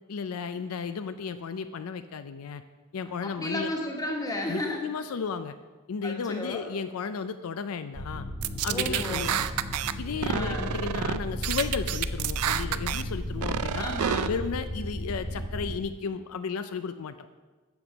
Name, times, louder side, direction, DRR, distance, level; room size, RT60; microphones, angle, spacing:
voice 1, 0.1-2.6 2.9-3.7 4.5-5.6 5.9-8.3 8.6-9.5 10.0-13.9 14.3-17.3, left 5 dB, 75° left, 10 dB, 0.4 m, -34 dB
voice 2, 3.2-4.8 6.0-6.6 8.7-9.3 10.2-10.7 13.8-14.3, left 1 dB, 15° left, 0 dB, 1.3 m, -33 dB
sound 1, 7.9-15.8, equal, 45° left, 1.6 m, -35 dB
sound 2, 8.4-9.9 10.2-11.2 11.4-13.0 13.4-14.3, right 10 dB, 80° right, 0.4 m, -29 dB
8.0 x 7.0 x 6.1 m, 1.3 s
head